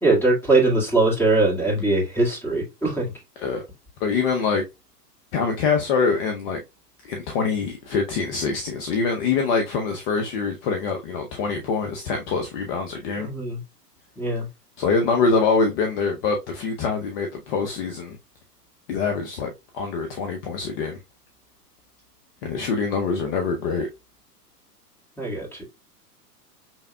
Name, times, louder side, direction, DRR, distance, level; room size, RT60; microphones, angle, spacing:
voice 1, 0.0-3.0 13.2-13.6 14.2-14.5 25.2-25.6, right 2 dB, 5° left, 1.9 m, -21 dB
voice 2, 4.0-4.6 5.3-6.6 7.0-13.3 14.8-18.2 18.9-21.0 22.4-23.9, left 4 dB, 35° left, 0.7 m, -24 dB
5.6 x 3.4 x 2.2 m
hypercardioid pair, 110°, 48 cm